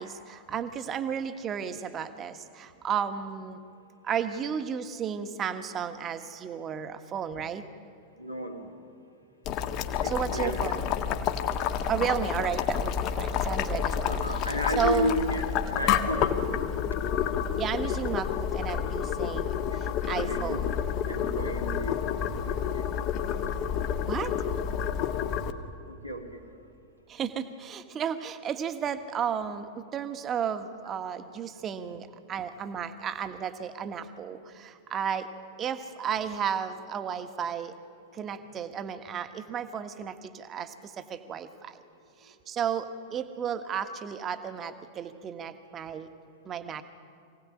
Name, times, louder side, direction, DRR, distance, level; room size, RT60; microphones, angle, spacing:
voice 1, 0.0-3.6 4.0-7.6 10.0-10.8 11.9-14.2 14.4-15.2 17.6-20.8 24.1-24.3 27.1-35.3 35.6-37.7 38.1-41.8 42.2-46.1 46.4-46.8, right 8 dB, 25° right, 10 dB, 1.5 m, -33 dB
voice 2, 8.2-8.6 10.0-10.8 14.1-16.2 19.7-19.8 20.1-20.7 21.1-22.9 25.9-26.2, left 1 dB, 90° left, 0 dB, 3.1 m, -32 dB
Boiling, 9.4-25.5, left 8 dB, 40° left, 1.5 m, -29 dB
25.5 x 17.5 x 10.0 m, 2.4 s
figure-of-eight pair, 90°, 0 cm